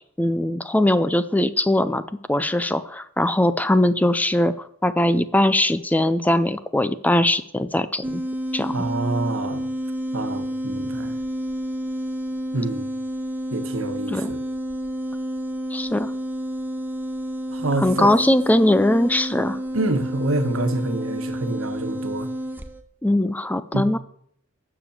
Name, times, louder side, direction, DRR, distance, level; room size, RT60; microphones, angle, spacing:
voice 1, 0.2-2.0 2.3-8.2 8.5-8.8 14.1-14.3 15.7-16.1 17.8-19.6 23.0-24.0, left 1 dB, 10° left, 0.4 m, -20 dB
sound 1, 8.0-22.8, equal, 10° right, 0.8 m, -30 dB
voice 2, 8.7-9.7 10.1-11.1 12.5-12.9 13.5-14.4 17.5-18.1 19.7-22.3 23.7-23.9, right 2 dB, 75° right, 1.3 m, -26 dB
9.9 x 7.0 x 7.3 m
head